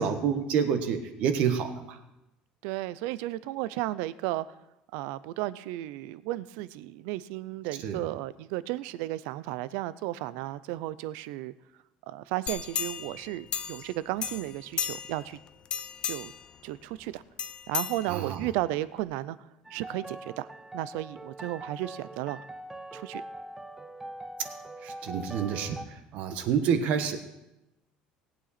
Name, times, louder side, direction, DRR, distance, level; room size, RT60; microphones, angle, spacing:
voice 1, 0.0-2.0 7.8-8.0 18.1-18.5 24.8-27.2, right 7 dB, 55° right, 8 dB, 1.2 m, -28 dB
voice 2, 2.6-4.5 4.9-11.5 12.1-15.4 16.1-16.3 16.6-17.2 17.7-19.4 19.7-20.5 20.7-22.4 22.9-23.2, right 16 dB, 85° right, 17 dB, 0.5 m, -34 dB
sound 1, 12.5-13.9 14.2-15.3 15.7-16.5 17.4-18.5 19.0-19.1, left 8 dB, 35° left, 0.5 m, -34 dB
sound 2, 19.6-25.8, right 1 dB, 10° right, 0.5 m, -43 dB
18.0 x 8.6 x 4.2 m, 0.91 s
cardioid pair, 165°, 3 cm